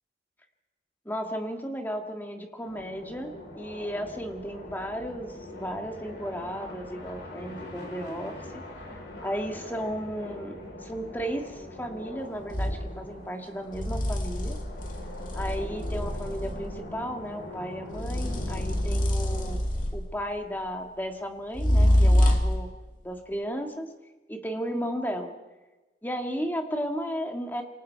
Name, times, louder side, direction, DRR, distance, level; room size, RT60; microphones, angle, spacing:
voice 1, 1.1-8.4 8.9-14.6 15.3-19.6 19.9-22.7 23.0-23.9 24.3-25.4 26.0-27.6, equal, 10° left, 3 dB, 1.9 m, -34 dB
sound 1, 2.6-19.6, left 1 dB, 85° left, 7.4 m, -42 dB
sound 2, 12.5-12.8 13.7-16.7 17.9-20.2 21.5-22.7, equal, 45° left, 2.3 m, -25 dB
27.5 x 24.5 x 4.6 m, 1.1 s
head